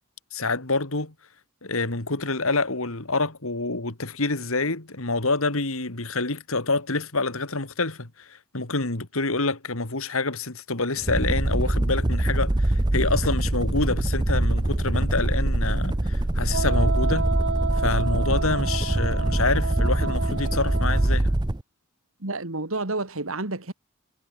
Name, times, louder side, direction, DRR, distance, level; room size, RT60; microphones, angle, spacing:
voice 1, 0.3-1.1 1.6-17.3 17.7-21.3, left 3 dB, 70° left, 2.5 m, -27 dB
sound 1, 11.0-21.6, right 1 dB, 20° right, 0.6 m, -23 dB
Wind instrument woodwind instrument, 16.5-21.2, right 4 dB, 55° right, 0.8 m, -31 dB
voice 2, 22.2-23.7, right 2 dB, 70° right, 2.3 m, -30 dB
head